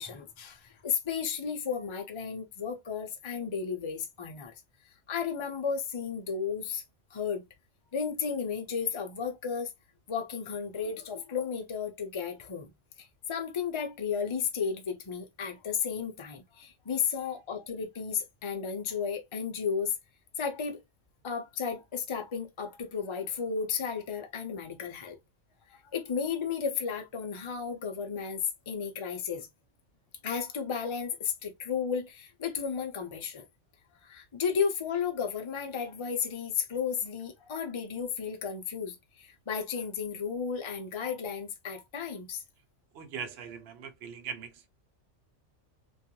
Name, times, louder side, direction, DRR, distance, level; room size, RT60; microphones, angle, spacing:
voice 1, 0.0-4.5 5.1-6.8 7.1-7.4 7.9-9.7 10.1-12.7 13.0-19.9 20.4-20.8 21.2-25.2 25.7-29.5 30.2-33.5 34.0-42.4, left 6 dB, 50° left, 0.3 m, -33 dB
voice 2, 42.9-44.7, right 6 dB, 65° right, 0.8 m, -41 dB
2.4 x 2.3 x 2.7 m
omnidirectional pair, 1.2 m